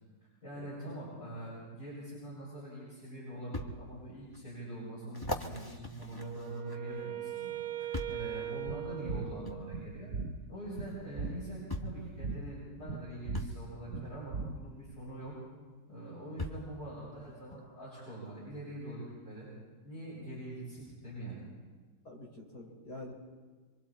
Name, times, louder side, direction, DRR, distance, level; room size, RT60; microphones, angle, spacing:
voice 1, 0.4-10.1 10.5-15.4 15.9-19.5 19.8-21.4, right 1 dB, 35° left, -9 dB, 8.2 m, -44 dB
sound 1, 2.4-2.5 3.5-3.7 4.3-4.4 5.1-7.0 7.9-8.3 9.4-9.6 10.9-11.0 11.7-12.0 13.3-13.6 15.2-15.3 16.4-16.7 17.5-17.6, left 1 dB, 15° left, 1.2 m, -39 dB
Wind instrument woodwind instrument, 6.2-10.1, right 12 dB, 90° right, 1.6 m, -40 dB
sound 2, 8.6-14.9, right 3 dB, 45° right, 1.4 m, -40 dB
voice 2, 22.1-23.1, left 2 dB, 60° left, -1 dB, 5.3 m, -46 dB
26.5 x 25.5 x 4.3 m, 1.4 s
omnidirectional pair, 1.9 m